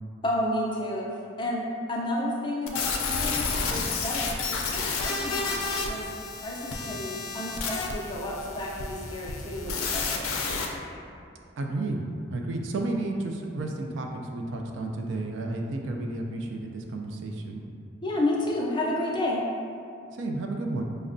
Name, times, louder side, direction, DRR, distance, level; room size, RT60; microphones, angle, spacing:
voice 1, 0.2-1.0 1.4-4.3 4.7-6.1 6.4-10.3 18.0-19.4, left 1 dB, 20° left, -3 dB, 0.4 m, -31 dB
sound 1, 2.7-10.7, left 4 dB, 90° left, 0.4 m, -31 dB
voice 2, 11.6-12.0 12.3-17.6 20.1-20.8, right 2 dB, 60° right, 2 dB, 0.3 m, -32 dB
5.2 x 2.1 x 2.5 m, 2.5 s
head